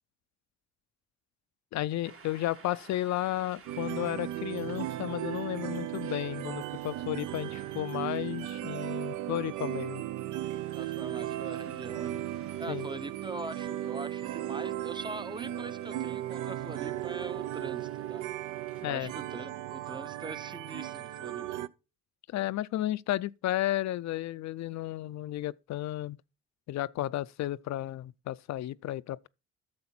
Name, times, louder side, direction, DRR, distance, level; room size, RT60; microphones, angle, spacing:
voice 1, 1.7-10.0 12.7-12.9 18.8-19.1 22.3-26.2 26.7-29.3, left 14 dB, 65° left, 0.5 m, -33 dB
sound 1, 2.0-18.9, right 5 dB, 45° right, 1.4 m, -57 dB
sound 2, 3.7-21.7, right 12 dB, 80° right, 0.6 m, -36 dB
voice 2, 10.7-18.3 18.8-21.5, right 2 dB, 15° right, 0.6 m, -42 dB
9.6 x 6.9 x 4.3 m
cardioid pair, 90°, 30 cm